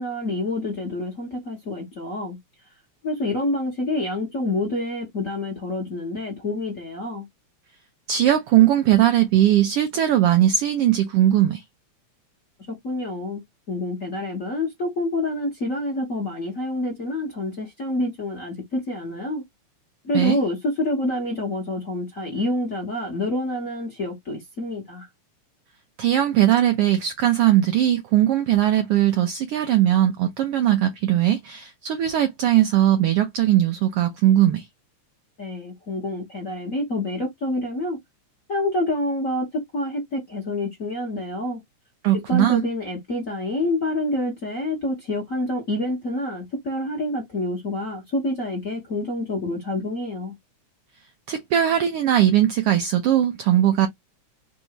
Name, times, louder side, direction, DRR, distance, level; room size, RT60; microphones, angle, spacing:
voice 1, 0.0-2.4 3.0-7.2 12.8-13.4 13.7-19.4 20.0-25.1 35.4-38.0 38.5-39.5 39.7-41.6 42.3-50.3, left 1 dB, 40° left, 1.2 m, -27 dB
voice 2, 8.1-11.6 20.1-20.4 26.0-34.6 42.0-42.6 51.3-53.9, right 12 dB, 85° right, 1.3 m, -19 dB
4.7 x 2.6 x 3.0 m
omnidirectional pair, 3.4 m